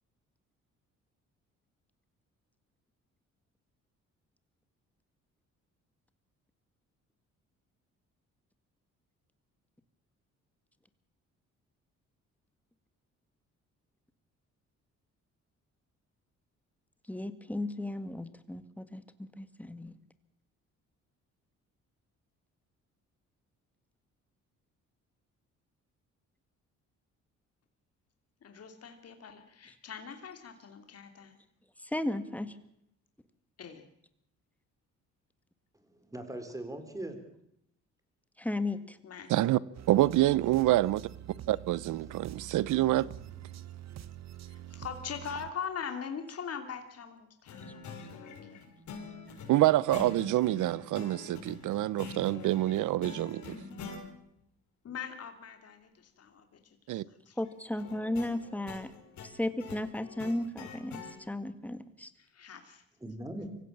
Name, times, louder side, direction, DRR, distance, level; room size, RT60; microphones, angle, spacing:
voice 1, 17.1-19.0 19.4-19.9 31.9-32.5 38.4-39.0 57.4-58.9 59.2-61.0 61.3-62.1, left 1 dB, 5° left, 1.9 m, -34 dB
voice 2, 28.4-31.4 33.6-33.9 39.0-39.3 44.4-48.7 54.8-57.4 62.2-62.9, left 7 dB, 55° left, 2.8 m, -42 dB
voice 3, 35.9-37.2 63.0-63.5, right 1 dB, 10° right, 4.4 m, -40 dB
sound 1, 39.7-45.5, right 11 dB, 60° right, 1.1 m, -46 dB
voice 4, 39.9-41.0 41.5-43.1 49.5-53.6 56.9-57.0, right 15 dB, 80° right, 0.8 m, -26 dB
sound 2, 47.5-54.0 57.8-61.1, left 4 dB, 70° left, 5.8 m, -45 dB
24.5 x 16.0 x 7.4 m
cardioid pair, 90°, 30 cm